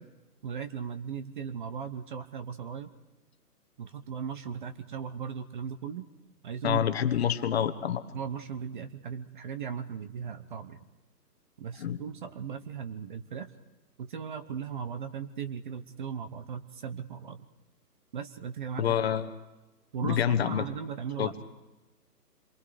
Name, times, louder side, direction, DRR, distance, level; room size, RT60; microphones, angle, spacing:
voice 1, 0.4-2.9 3.8-6.1 6.4-6.9 8.1-10.8 11.6-13.5 14.0-17.5 18.1-18.9 19.9-21.4, right 7 dB, 30° right, 10 dB, 0.9 m, -37 dB
voice 2, 6.6-8.0 11.8-12.0 18.8-19.3 20.0-20.7 21.2-21.3, left 9 dB, 40° left, 10 dB, 1.3 m, -27 dB
28.0 x 23.5 x 5.0 m, 1.1 s
hypercardioid pair, 150°, 49 cm